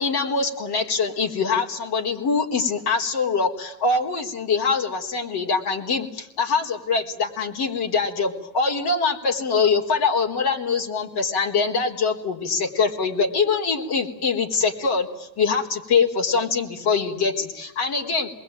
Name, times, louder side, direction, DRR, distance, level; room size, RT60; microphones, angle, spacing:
voice 1, 0.0-18.3, left 4 dB, 50° left, 2 dB, 4.2 m, -23 dB
27.5 x 21.0 x 9.3 m, 0.87 s
hypercardioid pair, 80°, 49 cm